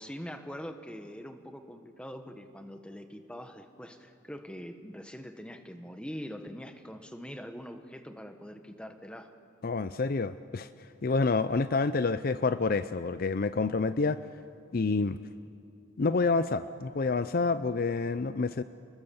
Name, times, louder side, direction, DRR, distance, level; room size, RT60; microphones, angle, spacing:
voice 1, 0.0-9.3, equal, 5° left, 7 dB, 1.2 m, -43 dB
voice 2, 9.6-10.7 11.0-14.2 14.7-15.2 16.0-18.6, left 4 dB, 45° left, 13 dB, 0.5 m, -28 dB
30.0 x 21.0 x 7.1 m, 2.5 s
head